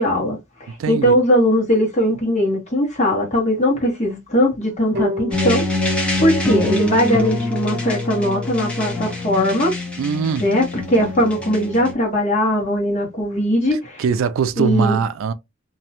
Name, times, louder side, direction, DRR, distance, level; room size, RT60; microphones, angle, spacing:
voice 1, 0.0-5.7 6.2-9.7 10.4-14.0 14.6-15.0, equal, 35° left, 1.1 m, -19 dB
voice 2, 0.8-1.2 10.0-10.5 14.0-15.3, right 6 dB, 85° right, 0.3 m, -21 dB
sound 1, 4.9-8.2, left 2 dB, 55° right, 0.7 m, -32 dB
sound 2, 5.3-11.9, left 1 dB, 5° left, 0.7 m, -24 dB
2.6 x 2.1 x 2.8 m
head